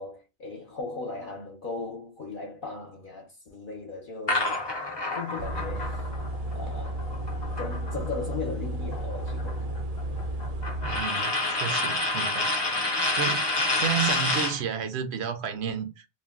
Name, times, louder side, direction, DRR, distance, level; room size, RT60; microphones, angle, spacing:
voice 1, 0.0-4.8 5.1-6.0 6.5-7.0 7.6-9.8, left 4 dB, 55° left, 0.8 m, -37 dB
sound 1, 4.3-8.3 8.7-14.6, left 2 dB, 30° left, 0.5 m, -29 dB
sound 2, 5.4-11.0, right 1 dB, 50° right, 0.5 m, -33 dB
voice 2, 10.8-12.5 13.1-13.5 13.7-16.1, right 7 dB, 80° right, 0.8 m, -31 dB
2.5 x 2.2 x 3.5 m
omnidirectional pair, 1.1 m